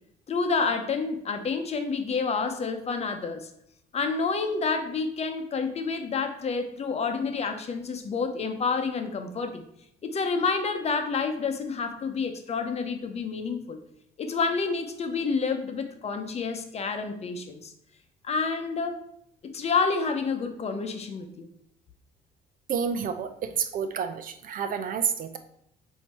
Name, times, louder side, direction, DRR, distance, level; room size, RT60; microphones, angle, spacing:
voice 1, 0.3-3.5 3.9-9.6 10.0-13.8 14.2-17.7 18.2-19.1 19.4-21.5, left 4 dB, 40° left, 6 dB, 0.8 m, -29 dB
voice 2, 22.7-25.4, right 7 dB, 55° right, 9 dB, 0.6 m, -29 dB
7.9 x 2.8 x 4.3 m, 0.75 s
cardioid pair, 110°, 17 cm